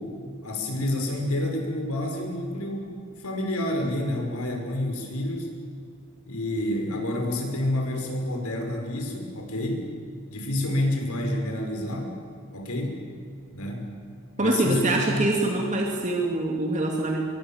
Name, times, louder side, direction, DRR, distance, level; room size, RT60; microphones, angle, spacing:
voice 1, 0.0-5.5 6.3-9.8 10.3-12.1 12.5-13.0 13.5-13.9 14.4-15.2, left 1 dB, 85° left, 2 dB, 5.4 m, -29 dB
voice 2, 14.4-17.2, right 2 dB, 35° right, 0 dB, 2.4 m, -24 dB
24.0 x 23.0 x 7.3 m, 2.3 s
head